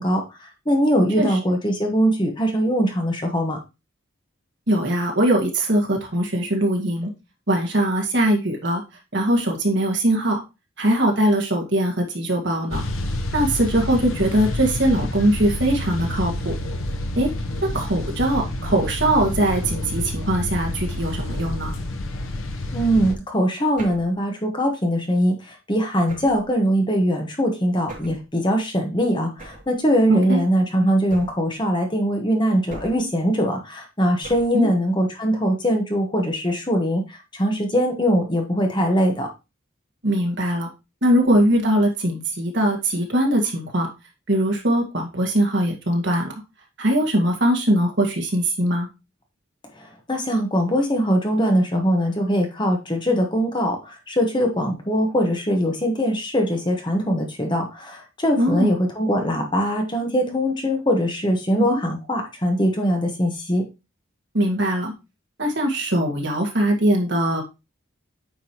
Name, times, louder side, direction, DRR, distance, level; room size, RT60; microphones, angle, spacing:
voice 1, 0.0-3.6 22.7-39.3 49.7-63.7, equal, 20° left, 3 dB, 1.2 m, -22 dB
voice 2, 4.7-7.1 7.5-8.8 9.1-10.4 10.8-12.8 13.3-16.5 17.1-17.3 17.6-21.7 30.1-30.4 34.5-34.7 40.0-40.7 41.0-43.9 44.3-46.3 46.8-48.9 58.4-58.7 64.3-64.9 65.4-67.4, right 1 dB, 55° right, 1 dB, 1.8 m, -21 dB
sound 1, 12.7-23.2, left 1 dB, 75° left, 0.9 m, -28 dB
sound 2, 23.8-24.2 26.1-26.5 27.9-28.3 29.4-29.8 31.1-31.6 32.7-33.2 34.2-34.7, right 2 dB, 35° right, 2.6 m, -40 dB
9.0 x 5.2 x 3.0 m, 0.26 s
head